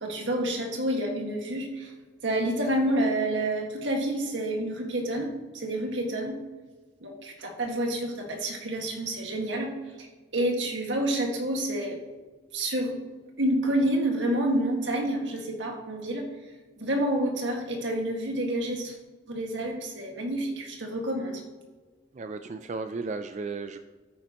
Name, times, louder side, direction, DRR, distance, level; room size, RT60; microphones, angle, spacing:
voice 1, 0.0-1.9 2.2-6.4 7.0-9.7 10.0-10.1 10.3-12.0 12.5-13.0 13.4-16.3 16.8-19.0 19.3-21.4, right 1 dB, 80° right, 2 dB, 1.8 m, -28 dB
voice 2, 22.1-23.8, right 4 dB, 40° right, 9 dB, 0.4 m, -34 dB
11.5 x 9.4 x 3.0 m, 1.4 s
head